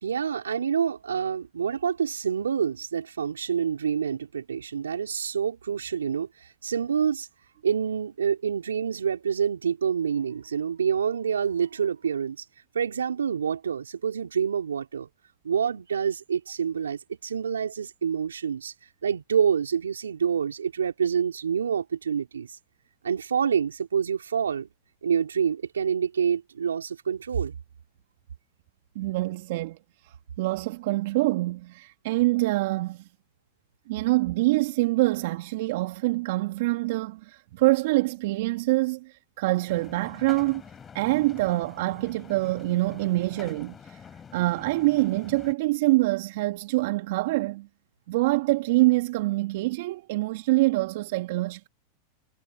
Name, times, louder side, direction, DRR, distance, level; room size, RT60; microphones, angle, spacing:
voice 1, 0.0-6.3 6.6-7.3 7.6-12.4 12.7-15.1 15.4-18.7 19.0-22.6 23.0-24.7 25.0-27.6, right 7 dB, 85° right, 4.1 m, -27 dB
voice 2, 29.0-29.8 30.0-33.0 33.9-40.6 40.9-44.0 44.3-47.7 48.1-51.7, right 20 dB, 65° right, 1.9 m, -25 dB
sound 1, 39.7-45.5, left 7 dB, 25° left, 5.6 m, -46 dB
hypercardioid pair, 100°, 0 cm